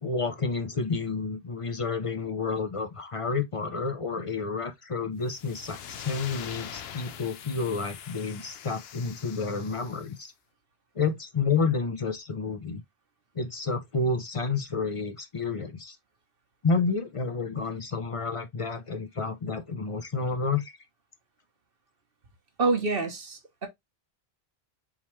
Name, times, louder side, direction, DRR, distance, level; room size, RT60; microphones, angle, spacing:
voice 1, 0.0-10.3 10.9-12.8 13.3-16.0 16.6-20.7, left 4 dB, 40° left, 0.6 m, -30 dB
sound 1, 5.2-10.2, left 8 dB, 75° left, 0.8 m, -43 dB
voice 2, 22.6-23.7, right 3 dB, 60° right, 1.2 m, -27 dB
4.3 x 3.6 x 3.0 m
omnidirectional pair, 1.1 m